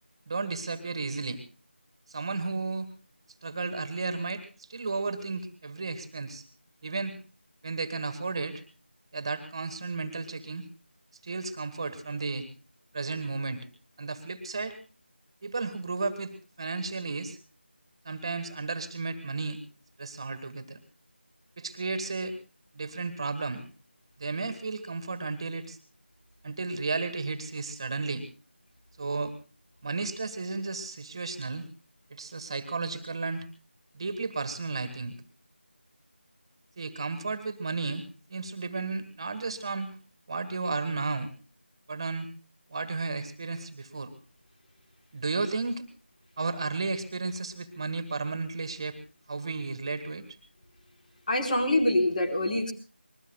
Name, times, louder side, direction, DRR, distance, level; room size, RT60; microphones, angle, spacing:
voice 1, 0.3-1.4 2.1-2.9 3.4-6.5 6.8-7.2 7.6-8.6 9.1-10.7 11.2-12.5 12.9-13.7 14.0-14.8 15.4-17.4 18.1-19.6 20.0-20.8 21.6-22.4 22.7-23.6 24.2-25.8 26.4-28.3 29.0-29.3 29.8-31.7 32.1-33.5 33.9-35.1 36.8-40.0 40.3-41.3 41.9-42.3 42.7-44.1 45.1-45.8 46.4-49.0 49.3-50.3, right 3 dB, 25° right, 11 dB, 1.7 m, -33 dB
voice 2, 51.3-52.7, left 1 dB, 40° left, 3 dB, 4.8 m, -25 dB
28.0 x 21.5 x 2.3 m, 0.37 s
figure-of-eight pair, 170°, 6 cm